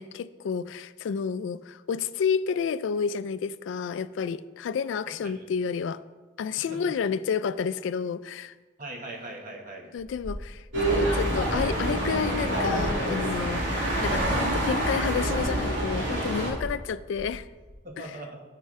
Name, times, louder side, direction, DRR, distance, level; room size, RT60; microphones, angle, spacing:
voice 1, 0.0-6.0 6.4-8.5 9.9-17.5 18.0-18.1, left 6 dB, 80° left, 15 dB, 0.3 m, -30 dB
voice 2, 5.1-5.4 6.7-6.9 8.8-9.9 17.8-18.4, right 2 dB, 45° right, 0 dB, 1.3 m, -40 dB
sound 1, 10.0-17.7, left 1 dB, 15° left, 0.9 m, -41 dB
sound 2, 10.7-16.5, right 1 dB, 80° right, 2.1 m, -26 dB
13.0 x 4.6 x 3.2 m, 1.3 s
head